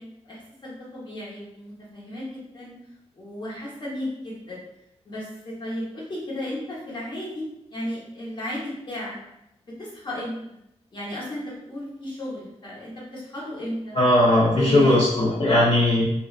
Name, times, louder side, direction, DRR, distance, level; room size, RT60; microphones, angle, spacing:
voice 1, 0.0-2.7 3.1-4.6 5.1-7.5 7.7-9.2 9.6-10.6 10.9-14.0 14.4-15.0 15.5-15.7, left 1 dB, 40° left, -6 dB, 0.9 m, -34 dB
voice 2, 13.9-16.1, left 1 dB, 60° left, -8 dB, 0.6 m, -18 dB
2.5 x 2.1 x 2.4 m, 0.83 s
wide cardioid pair, 125°, 11 cm